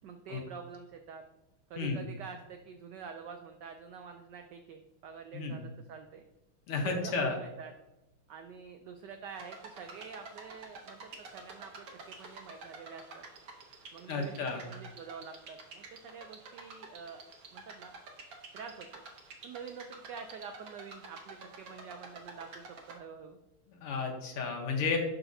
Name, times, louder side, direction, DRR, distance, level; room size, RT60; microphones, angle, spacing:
voice 1, 0.0-1.2 1.7-6.2 6.8-7.7 8.3-13.2 13.9-17.3 17.5-17.9 18.5-19.0 19.4-23.4, right 6 dB, 90° right, 6 dB, 0.9 m, -47 dB
voice 2, 6.7-7.4 14.1-14.7 23.7-25.0, left 4 dB, 85° left, 3 dB, 2.1 m, -32 dB
sound 1, 9.4-23.0, right 4 dB, 55° right, 1.1 m, -49 dB
11.5 x 4.1 x 2.7 m, 0.95 s
omnidirectional pair, 2.4 m